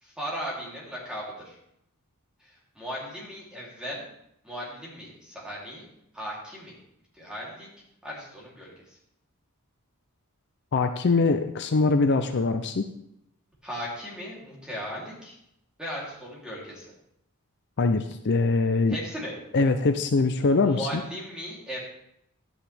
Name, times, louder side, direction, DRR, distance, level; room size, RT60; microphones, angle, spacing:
voice 1, 0.0-1.6 2.4-4.0 4.4-5.9 6.1-6.8 7.1-7.7 8.0-9.0 13.6-15.4 15.8-16.9 18.9-19.3 20.7-21.8, equal, 5° right, -6 dB, 3.0 m, -37 dB
voice 2, 10.7-12.9 17.8-19.0 19.5-21.0, left 3 dB, 50° left, 7 dB, 0.5 m, -23 dB
11.5 x 8.6 x 3.4 m, 0.76 s
head